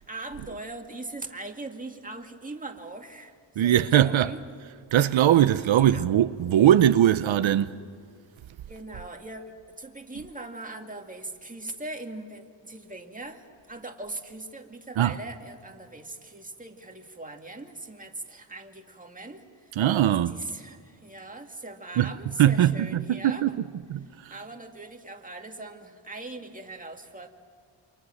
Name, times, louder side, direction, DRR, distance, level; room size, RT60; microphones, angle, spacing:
voice 1, 0.0-3.7 4.0-4.4 5.7-6.1 8.7-19.8 20.3-23.6 24.3-27.3, right 2 dB, 15° right, 2.2 m, -40 dB
voice 2, 3.6-4.3 4.9-7.7 15.0-15.1 19.8-20.4 22.0-22.1 22.4-23.6 23.9-24.3, right 11 dB, 80° right, 0.8 m, -21 dB
28.5 x 26.0 x 6.4 m
wide cardioid pair, 120°, 47 cm